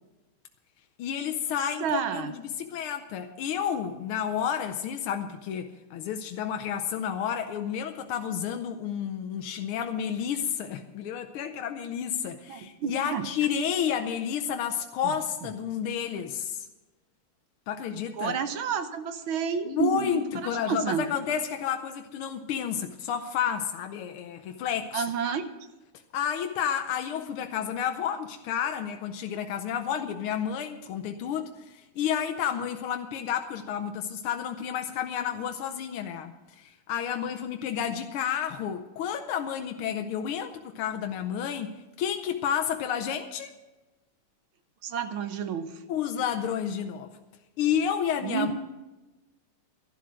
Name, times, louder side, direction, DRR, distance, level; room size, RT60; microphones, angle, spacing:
voice 1, 1.0-16.7 17.7-18.4 19.7-25.4 26.1-43.6 45.9-47.1 47.6-48.5, left 8 dB, 80° left, 6 dB, 1.6 m, -31 dB
voice 2, 1.8-2.3 12.5-13.3 18.2-21.0 24.9-25.5 44.8-45.8 48.2-48.5, right 7 dB, 70° right, 9 dB, 1.7 m, -30 dB
12.0 x 11.5 x 6.2 m, 1.1 s
omnidirectional pair, 2.4 m